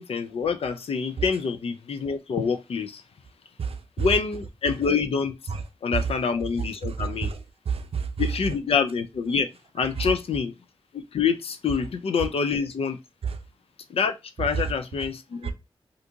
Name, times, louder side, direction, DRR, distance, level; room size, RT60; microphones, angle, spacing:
voice 1, 0.0-3.0 4.0-5.4 5.8-7.3 8.2-9.5 9.7-10.5 10.9-13.0 13.9-15.5, left 5 dB, 80° left, 0.4 m, -26 dB
voice 2, 3.6-4.1 5.5-5.6 5.9-6.1 6.6-8.3 9.8-10.1 13.2-13.4 14.4-14.7 15.4-15.5, right 6 dB, 80° right, 0.5 m, -29 dB
2.8 x 2.5 x 3.5 m
wide cardioid pair, 115°, 10 cm